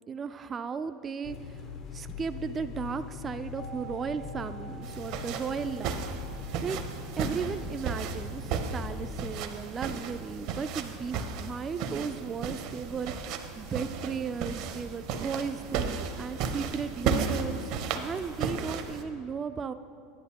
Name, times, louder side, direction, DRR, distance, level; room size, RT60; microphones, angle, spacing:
voice 1, 0.1-1.6 1.9-6.0 6.6-6.8 7.2-19.7, right 6 dB, 30° right, 10 dB, 0.3 m, -35 dB
sound 1, 1.2-9.4, left 5 dB, 50° left, 0.6 m, -42 dB
sound 2, 3.5-13.3 13.6-13.7, right 5 dB, 85° left, 2.2 m, -52 dB
sound 3, 4.8-19.0, right 5 dB, 60° right, 0.8 m, -34 dB
10.5 x 10.0 x 2.8 m, 2.3 s
hypercardioid pair, 100°, 0 cm